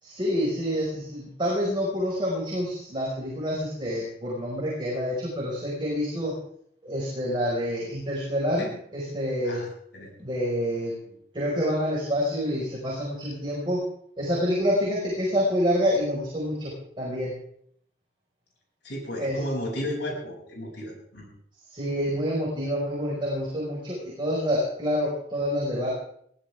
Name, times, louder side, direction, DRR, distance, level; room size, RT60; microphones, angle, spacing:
voice 1, 0.0-6.3 6.8-9.6 10.2-10.9 11.3-13.8 14.2-16.7 17.0-17.3 19.2-19.4 21.7-25.9, equal, 25° right, -5 dB, 5.4 m, -27 dB
voice 2, 18.8-21.3, left 1 dB, 65° left, -2 dB, 7.5 m, -33 dB
22.5 x 15.5 x 3.7 m, 0.66 s
head